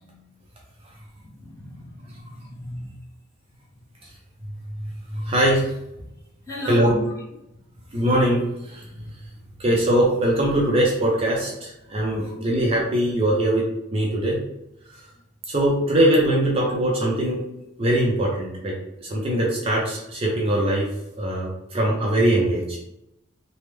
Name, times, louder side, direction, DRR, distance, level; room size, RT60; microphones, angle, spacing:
voice 1, 1.5-2.9 6.5-7.0, left 1 dB, 15° left, -6 dB, 0.9 m, -35 dB
voice 2, 5.1-5.7 6.7-7.0 7.9-8.9 9.6-13.7 13.9-14.4 15.5-17.4 17.8-18.8 19.0-20.9 21.2-22.8, right 1 dB, 30° right, -3 dB, 0.5 m, -21 dB
3.2 x 2.1 x 3.2 m, 0.86 s
head